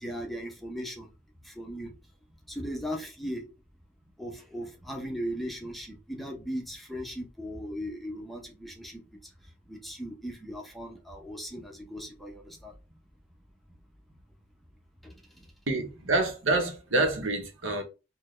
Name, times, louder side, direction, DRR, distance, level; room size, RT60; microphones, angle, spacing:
voice 1, 0.0-1.1 1.4-1.9 2.5-3.5 4.2-9.0 9.7-12.7 15.0-15.1, equal, ahead, 0.7 m, -37 dB
voice 2, 15.7-17.8, right 2 dB, 75° right, 0.9 m, -27 dB
3.9 x 2.2 x 3.2 m
head